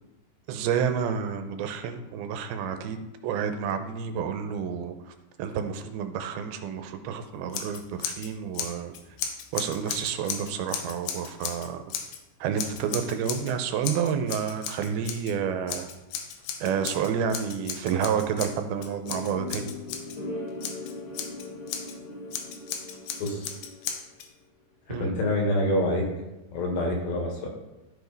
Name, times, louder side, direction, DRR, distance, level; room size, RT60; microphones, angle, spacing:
voice 1, 0.5-5.1 5.4-8.9 9.5-11.8 12.4-15.9 16.6-19.7 24.9-25.2, right 7 dB, 80° right, 8 dB, 2.6 m, -29 dB
Scissors, 7.5-8.3 8.5-12.2 12.6-13.5 13.8-15.3 15.7-20.2 20.6-21.9 22.3-24.3, left 8 dB, 90° left, 2.8 m, -35 dB
sound 1, 19.0-24.2, left 2 dB, 40° left, 1.7 m, -39 dB
voice 2, 23.2-23.5 25.0-26.1 26.5-27.5, left 1 dB, 70° left, 0 dB, 3.4 m, -26 dB
12.5 x 5.1 x 3.9 m, 1.0 s
omnidirectional pair, 4.4 m